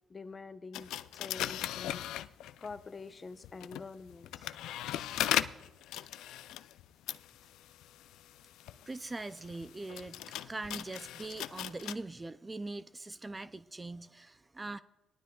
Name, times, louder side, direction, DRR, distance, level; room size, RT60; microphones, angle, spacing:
voice 1, 0.1-2.3 2.6-4.5, left 4 dB, 30° left, 0.8 m, -46 dB
sound 1, 0.7-2.8 3.4-11.9, left 12 dB, 90° left, 0.4 m, -38 dB
voice 2, 8.9-14.8, right 2 dB, 20° right, 0.4 m, -42 dB
20.5 x 12.0 x 2.3 m
cardioid pair, 90°, 0 cm